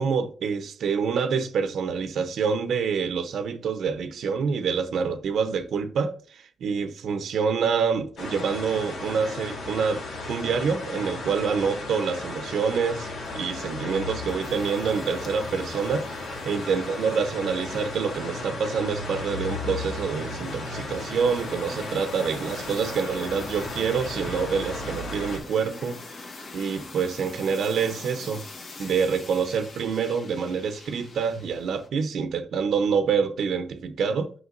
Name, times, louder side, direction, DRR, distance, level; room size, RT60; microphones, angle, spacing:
voice 1, 0.0-16.1 16.4-26.0 26.5-28.4 28.8-34.3, right 6 dB, 80° right, 0.7 m, -26 dB
sound 1, 8.2-25.4, left 2 dB, 80° left, 2.2 m, -35 dB
sound 2, 13.3-31.9, left 3 dB, 55° left, 1.6 m, -45 dB
8.1 x 5.5 x 2.6 m
cardioid pair, 95°, 0 cm